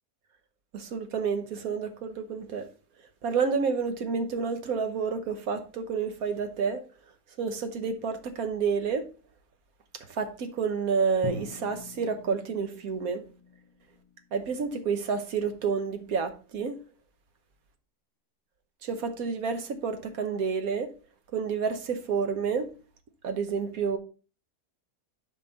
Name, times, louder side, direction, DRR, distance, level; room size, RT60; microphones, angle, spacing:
voice 1, 0.7-2.7 3.2-6.8 7.4-9.1 9.9-13.2 14.3-16.8 18.8-20.9 21.3-22.7 23.2-24.0, right 5 dB, 80° right, 1.5 m, -29 dB
Drum, 11.2-15.2, left 1 dB, 15° left, 1.0 m, -43 dB
11.5 x 4.5 x 3.9 m
omnidirectional pair, 1.5 m